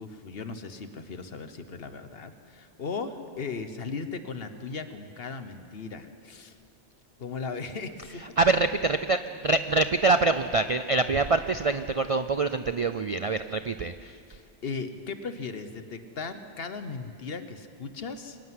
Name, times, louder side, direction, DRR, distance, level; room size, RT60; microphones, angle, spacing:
voice 1, 0.0-6.6 7.2-8.6 14.3-18.4, left 4 dB, 55° left, 10 dB, 1.2 m, -37 dB
voice 2, 8.4-14.1, right 3 dB, 50° right, 10 dB, 0.4 m, -25 dB
24.0 x 11.5 x 9.5 m, 2.3 s
omnidirectional pair, 1.2 m